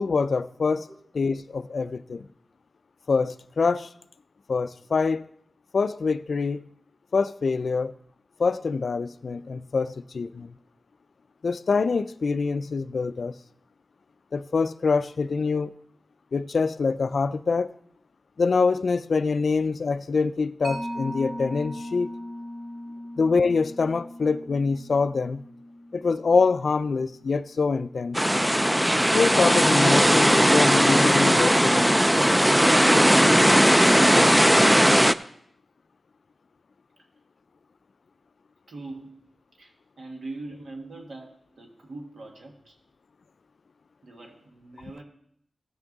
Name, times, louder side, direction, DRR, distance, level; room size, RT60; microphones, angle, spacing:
voice 1, 0.0-0.9 1.1-2.3 3.1-3.9 4.5-5.3 5.7-6.6 7.1-7.9 8.4-10.5 11.4-13.3 14.3-15.7 16.3-17.7 18.4-22.1 23.2-25.4 25.9-28.2 29.1-32.0, left 4 dB, 70° left, 0.4 m, -25 dB
Mallet percussion, 20.6-27.7, equal, 45° right, 3.4 m, -39 dB
sound 1, 28.1-35.1, equal, 5° right, 0.3 m, -18 dB
voice 2, 38.7-42.8 44.0-45.0, right 2 dB, 75° right, 1.8 m, -42 dB
15.0 x 6.0 x 4.0 m
wide cardioid pair, 85°, 0 cm